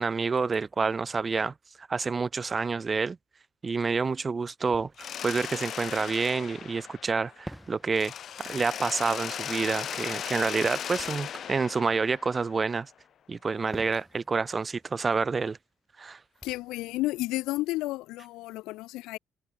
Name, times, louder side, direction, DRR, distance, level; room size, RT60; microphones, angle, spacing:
voice 1, 0.0-3.2 3.6-8.1 8.4-12.9 13.3-15.6 16.0-16.2, right 4 dB, 25° right, 0.4 m, -28 dB
Fireworks, 4.7-6.6 7.4-12.8 13.7-18.5, equal, ahead, 3.4 m, -52 dB
Mechanisms, 5.0-7.6 7.9-12.8, left 9 dB, 45° left, 1.0 m, -37 dB
voice 2, 16.4-19.2, left 19 dB, 85° left, 0.3 m, -32 dB
cardioid pair, 135°, 0 cm